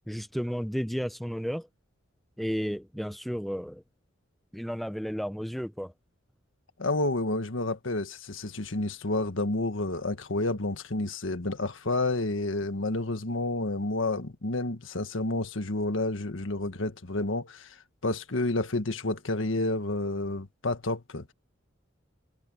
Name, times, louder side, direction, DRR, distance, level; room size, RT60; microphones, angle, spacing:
voice 1, 0.1-1.7 2.4-3.8 4.5-5.9, equal, ahead, 0.8 m, -32 dB
voice 2, 6.8-17.8 18.0-21.3, left 2 dB, 80° left, 1.6 m, -30 dB
head